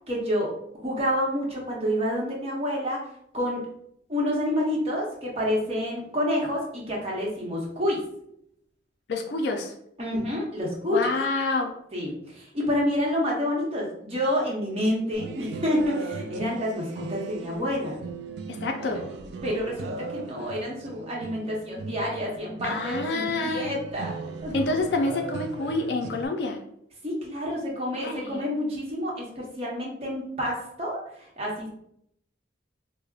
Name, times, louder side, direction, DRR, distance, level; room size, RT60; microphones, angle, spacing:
voice 1, 0.1-0.5 0.8-3.1 3.3-3.7 4.1-8.0 10.0-11.1 11.9-18.0 18.8-18.9 19.4-24.1 24.4-24.6 27.0-31.0 31.4-31.7, equal, 35° right, -3 dB, 0.9 m, -28 dB
voice 2, 9.1-9.7 10.9-11.7 18.6-19.0 22.6-23.8 24.5-26.6 28.0-28.5, left 3 dB, 65° left, 3 dB, 0.4 m, -27 dB
sound 1, 15.1-26.3, right 4 dB, 65° right, 0.3 m, -38 dB
4.8 x 2.1 x 2.4 m, 0.73 s
head